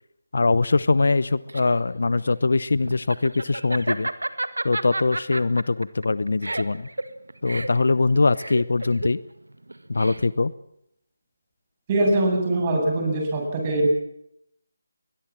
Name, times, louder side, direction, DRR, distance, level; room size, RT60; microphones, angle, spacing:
voice 1, 0.3-4.1 4.6-6.9 7.4-9.2 9.9-10.5, left 3 dB, 65° left, 19 dB, 0.9 m, -22 dB
Laughter, 1.1-10.5, right 2 dB, 80° right, 1.8 m, -32 dB
voice 2, 11.9-13.9, right 1 dB, 25° right, 1 dB, 7.9 m, -22 dB
21.5 x 21.5 x 7.6 m, 0.78 s
figure-of-eight pair, 155°, 0 cm